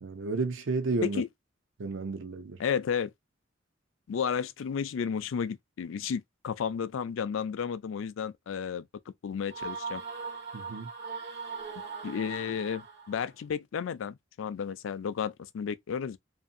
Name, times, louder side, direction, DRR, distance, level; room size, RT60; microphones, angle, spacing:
voice 1, 0.0-1.2 1.8-2.6 10.5-10.9, right 3 dB, 80° right, 0.6 m, -32 dB
voice 2, 2.6-3.1 4.1-8.9 9.2-10.0 12.0-16.2, left 7 dB, 85° left, 0.4 m, -32 dB
sound 1, 9.5-13.3, right 5 dB, 60° right, 1.0 m, -40 dB
2.6 x 2.6 x 2.5 m
head